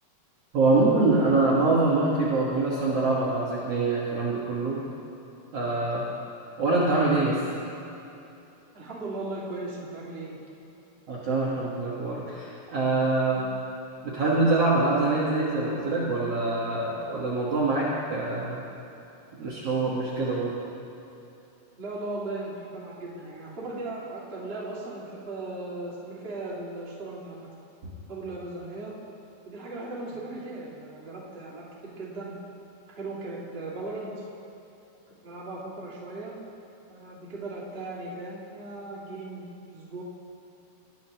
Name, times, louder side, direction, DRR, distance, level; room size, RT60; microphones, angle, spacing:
voice 1, 0.5-4.8 5.5-6.0 6.6-7.4 11.1-13.5 14.0-18.6 19.4-20.6 27.8-27.9, right 3 dB, 85° right, -7 dB, 1.3 m, -24 dB
voice 2, 8.7-10.4 21.8-27.5 28.1-28.9 29.4-32.3 33.0-34.3 35.2-36.3 36.9-40.0, right 2 dB, 35° right, -7 dB, 1.0 m, -37 dB
20.0 x 11.0 x 2.9 m, 2.8 s
omnidirectional pair, 5.1 m